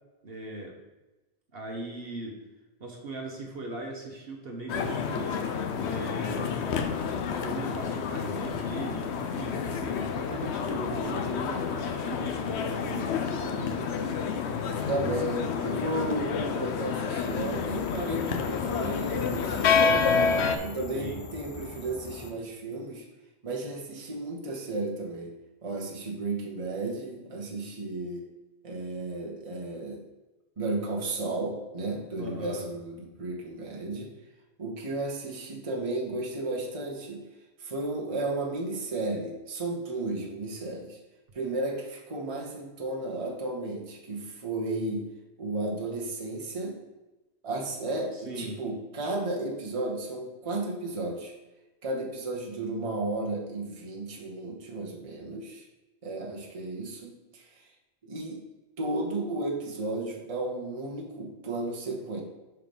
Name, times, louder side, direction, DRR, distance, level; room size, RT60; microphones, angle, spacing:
voice 1, 0.2-0.8 1.5-2.3 2.8-5.3 5.8-6.6 7.3-14.2 20.9-21.2 32.2-32.6 48.1-48.6, right 2 dB, 60° right, 0 dB, 1.3 m, -38 dB
sound 1, 4.7-20.6, left 6 dB, 90° left, 1.0 m, -29 dB
voice 2, 14.9-20.1 20.6-23.1 23.4-25.3 25.6-28.3 28.6-30.0 30.6-34.1 34.6-37.2 37.6-41.0 41.3-45.0 45.4-46.8 47.4-51.3 51.8-55.7 56.0-57.6 58.0-58.4 58.8-62.2, right 2 dB, 30° right, -2 dB, 1.1 m, -33 dB
sound 2, 17.2-22.3, left 4 dB, 40° left, 0.5 m, -42 dB
5.8 x 4.7 x 5.3 m, 1.1 s
omnidirectional pair, 1.1 m